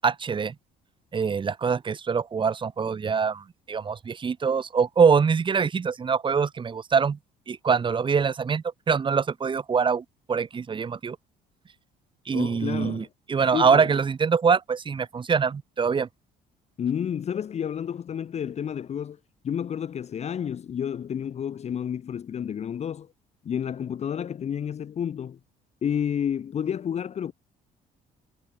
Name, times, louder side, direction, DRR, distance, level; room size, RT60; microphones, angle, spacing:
voice 1, 0.0-0.5 1.1-7.2 7.5-11.2 12.3-13.0 13.3-16.1, right 6 dB, 30° right, 1.3 m, -24 dB
voice 2, 12.3-13.1 13.5-14.0 16.8-23.1 23.4-25.4 25.8-27.3, left 8 dB, 40° left, 1.0 m, -30 dB
cardioid pair, 110°, 17 cm